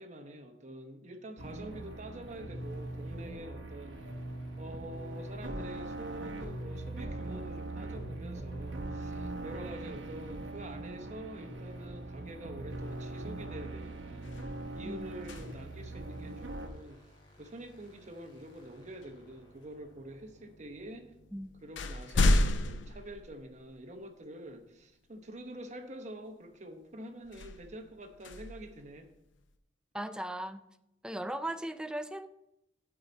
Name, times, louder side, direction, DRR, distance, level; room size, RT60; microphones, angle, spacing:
voice 1, 0.0-4.1 4.5-14.3 14.7-17.1 17.4-21.1 21.6-29.1, right 1 dB, 40° right, 6 dB, 1.0 m, -46 dB
sound 1, 1.4-16.7, right 2 dB, 70° right, 1.1 m, -41 dB
sound 2, 3.8-21.9, equal, 25° left, 2.3 m, -60 dB
sound 3, 13.2-13.4 13.8-15.9 18.0-18.2 19.0-19.8 20.7-20.8 21.2-24.0 24.5-24.6 27.2-29.4, left 1 dB, 75° left, 0.6 m, -33 dB
voice 2, 29.9-30.6 31.0-32.3, right 1 dB, 5° right, 10 dB, 0.3 m, -37 dB
13.5 x 4.9 x 4.0 m, 0.86 s
head